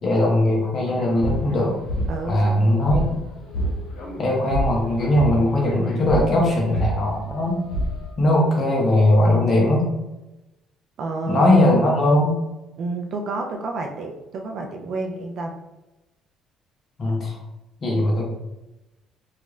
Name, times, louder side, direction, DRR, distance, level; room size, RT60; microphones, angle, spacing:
voice 1, 0.0-1.8 2.3-3.2 4.2-7.7 8.2-9.9 11.3-12.4 17.0-17.4 17.8-18.2, left 1 dB, 40° left, -2 dB, 0.9 m, -19 dB
sound 1, 0.9-3.1 3.5-8.0, equal, 85° left, 0.9 m, -28 dB
voice 2, 2.1-2.8 11.0-11.4 12.8-15.6, right 3 dB, 60° right, 3 dB, 0.4 m, -30 dB
3.2 x 2.4 x 3.1 m, 0.99 s
cardioid pair, 115°, 0 cm